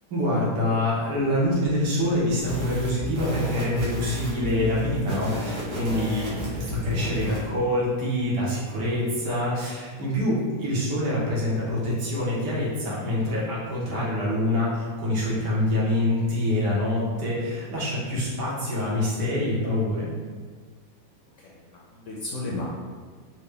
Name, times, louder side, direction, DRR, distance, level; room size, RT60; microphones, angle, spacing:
voice 1, 0.1-20.1, left 1 dB, 80° right, -6 dB, 1.7 m, -25 dB
sound 1, 2.4-7.5, left 2 dB, 50° right, 1.2 m, -32 dB
voice 2, 21.4-22.7, left 2 dB, 65° left, -4 dB, 0.8 m, -34 dB
4.2 x 2.2 x 3.3 m, 1.5 s
omnidirectional pair, 1.8 m